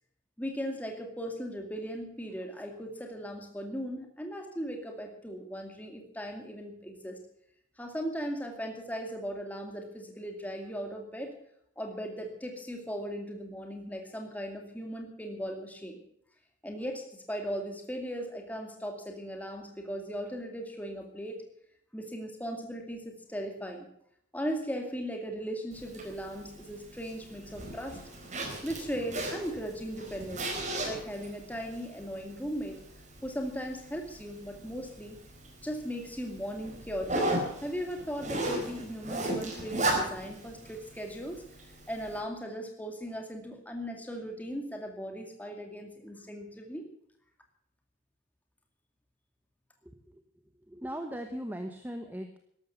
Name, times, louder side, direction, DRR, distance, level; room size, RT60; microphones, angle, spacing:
voice 1, 0.4-7.2 7.8-11.3 11.8-16.0 16.6-21.4 21.9-23.9 24.3-28.0 28.6-32.8 33.2-35.2 35.6-37.3 37.6-46.9, equal, 10° left, 3 dB, 2.4 m, -38 dB
Zipper (clothing), 25.7-42.2, right 1 dB, 35° right, 4.7 m, -37 dB
voice 2, 50.7-52.4, equal, 10° right, 5 dB, 1.1 m, -38 dB
14.0 x 12.0 x 6.9 m, 0.70 s
head